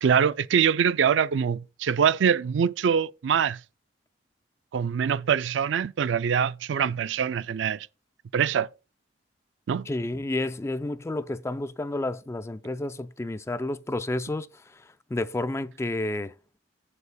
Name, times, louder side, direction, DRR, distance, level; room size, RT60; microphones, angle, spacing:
voice 1, 0.0-3.6 4.7-7.9 8.3-8.7 9.7-9.9, right 7 dB, 75° right, 0.4 m, -24 dB
voice 2, 9.9-16.3, left 2 dB, 15° left, 0.4 m, -31 dB
15.0 x 6.8 x 2.2 m
head